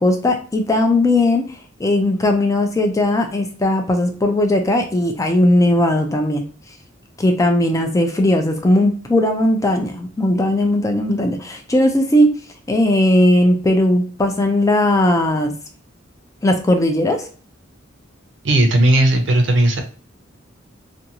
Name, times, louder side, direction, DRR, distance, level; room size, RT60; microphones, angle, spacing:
voice 1, 0.0-6.4 7.2-12.3 12.7-15.5 16.4-17.3, left 1 dB, 15° left, 4 dB, 0.3 m, -17 dB
voice 2, 18.4-19.8, right 1 dB, 60° right, 5 dB, 0.6 m, -15 dB
2.5 x 2.3 x 2.8 m, 0.40 s
head